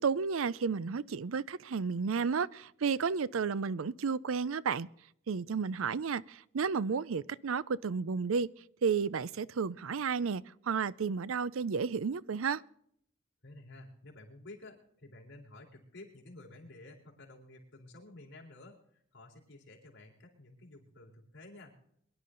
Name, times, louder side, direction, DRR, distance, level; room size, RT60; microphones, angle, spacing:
voice 1, 0.0-4.9 5.3-8.5 8.8-12.6, right 5 dB, 80° right, 0.5 m, -32 dB
voice 2, 13.4-21.7, left 2 dB, 60° left, 4.1 m, -52 dB
23.0 x 11.0 x 3.9 m
head